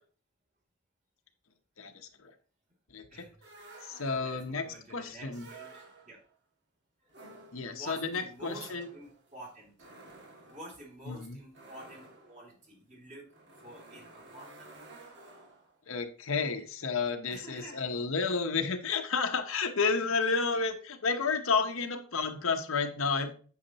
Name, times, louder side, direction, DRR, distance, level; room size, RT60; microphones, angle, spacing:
voice 1, 1.8-2.3 2.9-3.3 3.8-4.6 4.9-5.5 7.5-8.9 11.1-11.4 15.9-23.3, left 4 dB, 65° left, 6 dB, 0.9 m, -31 dB
sound 1, 3.4-4.5 5.3-6.3 7.1-15.8, right 2 dB, 50° right, 1.6 m, -53 dB
voice 2, 3.6-6.2 7.0-7.1 7.7-9.7 10.5-13.3 13.6-14.7 17.3-17.8, right 1 dB, 35° right, -2 dB, 2.7 m, -49 dB
8.5 x 6.5 x 2.9 m, 0.41 s
head